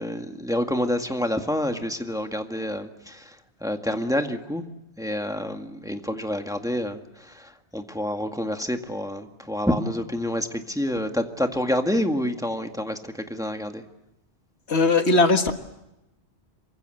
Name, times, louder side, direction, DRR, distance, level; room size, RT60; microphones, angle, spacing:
voice 1, 0.0-4.6 5.0-13.8, left 1 dB, 5° right, 5 dB, 1.9 m, -28 dB
voice 2, 14.7-15.5, left 3 dB, 75° left, 7 dB, 1.9 m, -19 dB
27.5 x 24.5 x 7.8 m, 0.90 s
omnidirectional pair, 1.1 m